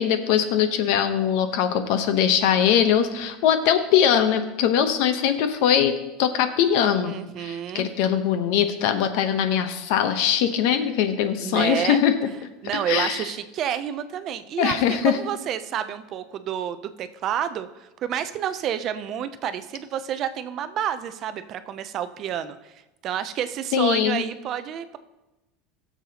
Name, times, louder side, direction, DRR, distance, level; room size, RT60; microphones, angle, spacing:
voice 1, 0.0-5.9 6.2-12.1 12.9-13.2 14.6-15.2 23.7-24.2, left 9 dB, 55° left, 9 dB, 0.8 m, -21 dB
voice 2, 7.0-7.9 11.4-12.0 12.6-22.7 23.0-25.0, right 10 dB, 30° right, 11 dB, 0.5 m, -29 dB
17.0 x 7.2 x 2.8 m, 1.0 s
cardioid pair, 175°, 0 cm